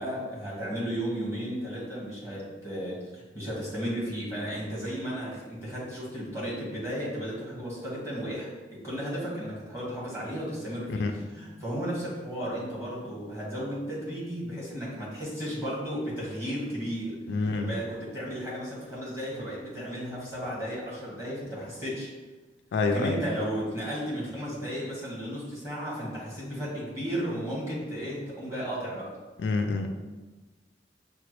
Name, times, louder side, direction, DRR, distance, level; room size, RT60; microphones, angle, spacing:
voice 1, 0.0-11.0 11.3-17.2 17.5-22.1 22.9-29.1, equal, 15° right, -7 dB, 1.2 m, -34 dB
voice 2, 17.3-17.7 22.7-23.2 29.4-29.9, left 3 dB, 70° left, 5 dB, 0.3 m, -27 dB
5.7 x 2.1 x 3.0 m, 1.2 s
head